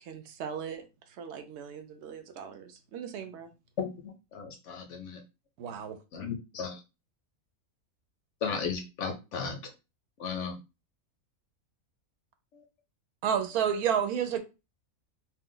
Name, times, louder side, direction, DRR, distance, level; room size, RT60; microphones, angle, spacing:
voice 1, 0.0-3.5, right 7 dB, 65° right, 0.7 m, -41 dB
voice 2, 3.8-5.2 6.1-6.8 8.4-9.7 10.2-10.6 12.5-12.6, left 6 dB, 65° left, 0.8 m, -35 dB
voice 3, 5.6-6.0 13.2-14.4, right 8 dB, 90° right, 1.1 m, -28 dB
2.6 x 2.2 x 3.7 m
omnidirectional pair, 1.5 m